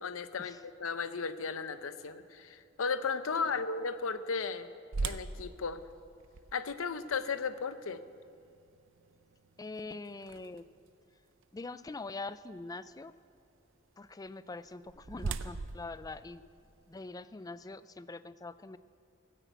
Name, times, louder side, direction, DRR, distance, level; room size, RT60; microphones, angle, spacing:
voice 1, 0.0-4.7 5.0-5.8 6.5-8.0, left 5 dB, 80° left, 12 dB, 0.7 m, -35 dB
sound 1, 4.9-10.9 11.4-11.5 12.1-12.4 14.4-17.1, right 4 dB, 65° right, 0.6 m, -42 dB
voice 2, 9.6-10.7 11.5-13.1 14.0-16.4 16.9-18.8, left 3 dB, 20° left, 14 dB, 0.3 m, -43 dB
16.5 x 10.0 x 8.2 m, 2.4 s
head